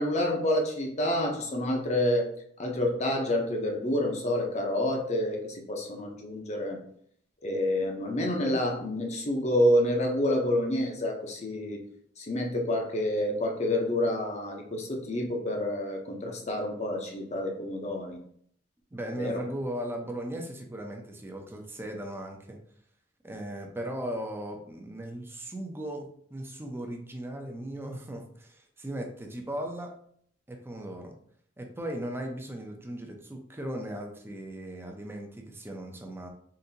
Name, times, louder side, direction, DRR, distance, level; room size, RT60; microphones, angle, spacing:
voice 1, 0.0-2.3 2.6-6.8 7.4-11.8 12.2-18.2 19.2-19.4, left 1 dB, 40° left, 2 dB, 0.7 m, -28 dB
voice 2, 18.9-22.6 23.2-29.9 30.5-31.1 31.6-36.3, right 1 dB, 15° right, 2 dB, 0.5 m, -37 dB
3.8 x 2.6 x 2.7 m, 0.64 s
head